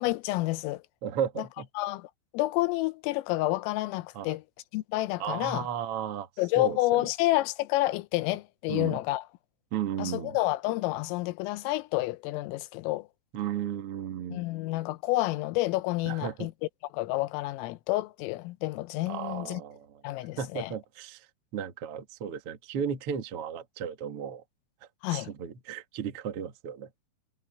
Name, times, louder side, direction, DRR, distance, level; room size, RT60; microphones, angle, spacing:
voice 1, 0.0-0.8 1.8-4.4 4.7-5.7 6.4-9.3 10.0-13.1 14.3-16.5 16.9-19.6 20.0-20.7 25.0-25.3, left 18 dB, 90° left, 3.5 m, -29 dB
voice 2, 1.0-1.7 4.1-4.3 5.2-6.3 6.5-7.1 8.7-9.0 9.7-10.4 13.3-14.4 16.0-16.5 19.1-19.9 20.4-21.3 21.5-24.4 25.1-26.9, right 8 dB, 75° right, 1.3 m, -34 dB
omnidirectional pair, 5.8 m